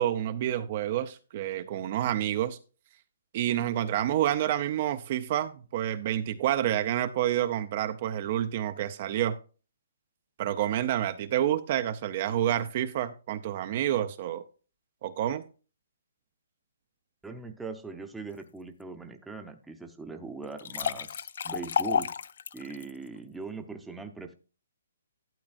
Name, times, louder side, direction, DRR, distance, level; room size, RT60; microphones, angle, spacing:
voice 1, 0.0-2.6 3.3-9.4 10.4-14.4 15.0-15.4, right 11 dB, 40° right, 0.5 m, -28 dB
voice 2, 17.2-22.1 22.5-24.3, right 4 dB, 5° right, 0.7 m, -41 dB
sound 1, 20.4-22.9, left 7 dB, 65° left, 0.4 m, -30 dB
12.0 x 8.6 x 2.5 m
hypercardioid pair, 155°, 0 cm